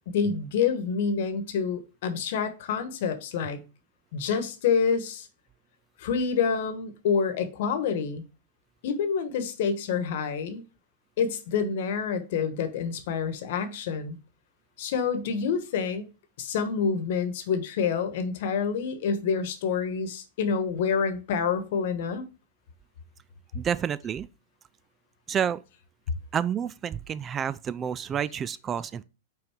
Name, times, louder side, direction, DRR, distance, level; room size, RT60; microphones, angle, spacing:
voice 1, 0.1-3.6 4.1-5.3 6.0-8.2 8.8-10.6 11.2-14.2 14.8-16.0 16.4-22.3, left 6 dB, 65° left, 1.2 m, -27 dB
voice 2, 23.5-24.3 25.3-25.6 26.3-29.0, right 8 dB, 25° right, 0.3 m, -29 dB
5.6 x 3.9 x 4.4 m
hypercardioid pair, 125°, 0 cm